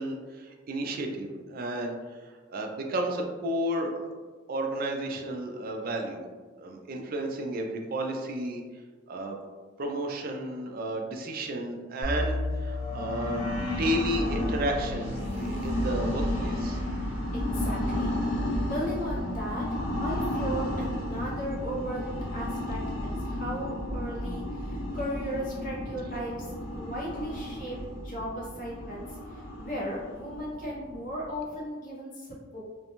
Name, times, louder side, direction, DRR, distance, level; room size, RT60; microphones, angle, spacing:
voice 1, 0.0-2.2 2.5-4.1 4.5-6.3 6.6-8.6 9.1-9.4 9.8-13.5 13.8-16.8, right 1 dB, 45° right, 2 dB, 0.3 m, -32 dB
sound 1, 12.0-21.7 22.1-22.2 22.7-22.9, left 2 dB, 15° right, 0.9 m, -37 dB
sound 2, 12.8-31.5, left 1 dB, 75° left, 0.6 m, -33 dB
voice 2, 17.5-18.1 18.6-26.5 26.7-32.6, equal, 40° left, -6 dB, 0.8 m, -36 dB
2.5 x 2.1 x 2.9 m, 1.4 s
head